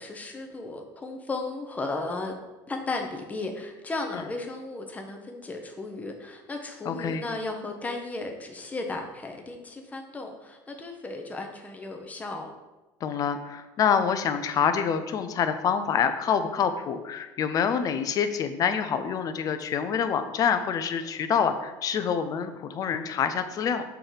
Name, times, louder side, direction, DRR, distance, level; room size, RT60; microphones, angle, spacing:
voice 1, 0.0-2.3 2.7-12.5, left 3 dB, 15° left, 3 dB, 1.0 m, -35 dB
voice 2, 6.8-7.2 13.0-23.8, left 7 dB, 45° left, 9 dB, 0.6 m, -26 dB
6.8 x 3.3 x 5.8 m, 1.1 s
supercardioid pair, 110°, 9 cm